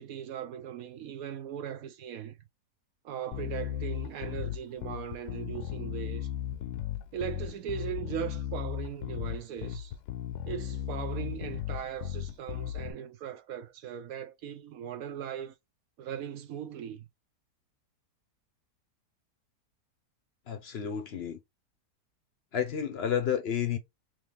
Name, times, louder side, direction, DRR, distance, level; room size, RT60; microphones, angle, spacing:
voice 1, 0.0-2.4 3.0-6.3 7.1-9.9 10.5-15.5 16.0-17.1, right 9 dB, 70° right, 1.0 m, -39 dB
Bass guitar, 3.3-12.9, left 11 dB, 80° left, 1.1 m, -36 dB
voice 2, 20.5-21.4 22.5-23.8, left 8 dB, 55° left, 0.7 m, -31 dB
3.7 x 3.1 x 3.3 m
omnidirectional pair, 1.7 m